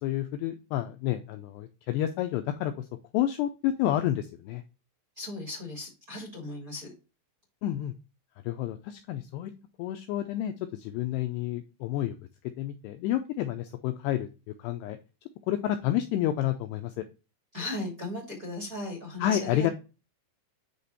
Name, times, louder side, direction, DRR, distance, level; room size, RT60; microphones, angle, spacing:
voice 1, 0.0-2.9 3.1-4.6 7.6-7.9 8.4-9.5 9.8-12.2 12.6-14.3 14.6-15.0 15.5-17.0 19.2-19.7, left 12 dB, 90° left, 8 dB, 2.4 m, -29 dB
voice 2, 5.2-6.9 17.5-19.7, left 2 dB, 25° right, -1 dB, 2.0 m, -36 dB
9.4 x 3.3 x 4.1 m, 0.30 s
omnidirectional pair, 5.4 m